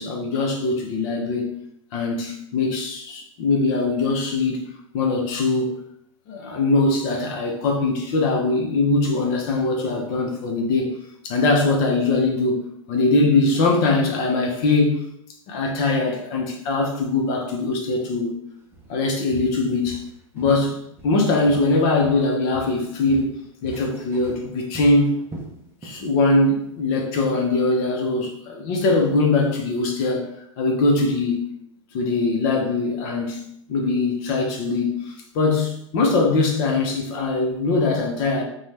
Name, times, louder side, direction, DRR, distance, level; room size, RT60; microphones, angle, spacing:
voice 1, 0.0-1.5 1.9-4.6 4.9-5.8 6.3-10.9 11.2-12.6 12.9-15.0 15.5-18.4 18.9-20.0 20.3-20.8 21.0-23.3 23.6-25.2 25.8-30.3 30.6-31.5 31.9-33.4 33.7-34.9 35.3-38.4, left 3 dB, 45° left, 1 dB, 0.7 m, -21 dB
Walk footsteps, 18.7-18.9 19.3-20.7 21.0-22.3 22.5-26.1 26.4-26.6 27.1-27.2, right 3 dB, 15° right, 0.5 m, -41 dB
2.6 x 2.2 x 3.2 m, 0.74 s
hypercardioid pair, 120°, 18 cm